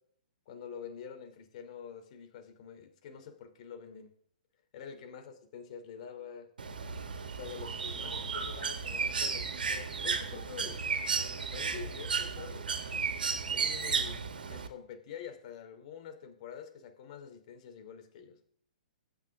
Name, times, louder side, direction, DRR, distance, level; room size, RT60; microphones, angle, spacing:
voice 1, 0.5-4.1 4.7-6.5 7.3-10.8 11.2-12.6 13.5-18.4, left 7 dB, 50° left, 6 dB, 2.7 m, -47 dB
Bird, 6.6-14.7, right 5 dB, 90° right, 1.7 m, -34 dB
22.5 x 8.1 x 3.5 m, 0.63 s
hypercardioid pair, 140°, 5 cm